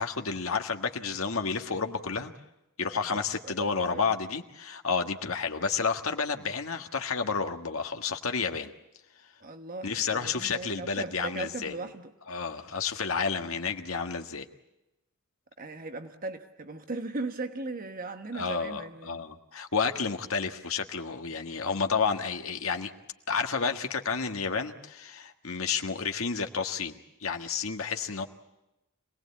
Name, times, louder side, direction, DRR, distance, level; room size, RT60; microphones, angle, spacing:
voice 1, 0.0-2.3 2.8-8.7 9.8-11.8 12.3-14.5 18.3-22.9 23.3-28.3, left 5 dB, 80° left, 5 dB, 1.6 m, -31 dB
voice 2, 3.1-4.0 9.4-12.1 15.6-19.2, right 3 dB, 45° right, 7 dB, 1.2 m, -38 dB
26.5 x 19.0 x 8.4 m, 0.94 s
head